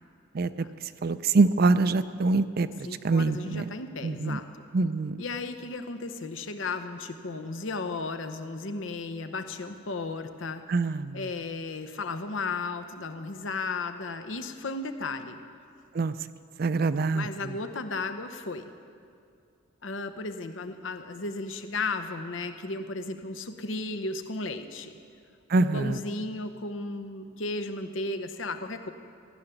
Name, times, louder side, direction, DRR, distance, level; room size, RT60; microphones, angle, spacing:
voice 1, 0.3-0.7 1.0-3.7 4.0-4.4 4.7-5.2 10.7-11.3 15.9-16.1 16.6-17.6 25.5-26.0, right 3 dB, 50° right, 14 dB, 0.5 m, -25 dB
voice 2, 2.9-4.4 5.2-10.6 11.1-15.4 17.1-18.7 19.8-24.9 25.5-28.9, left 3 dB, 75° left, 8 dB, 0.8 m, -34 dB
15.5 x 6.9 x 9.9 m, 2.3 s
head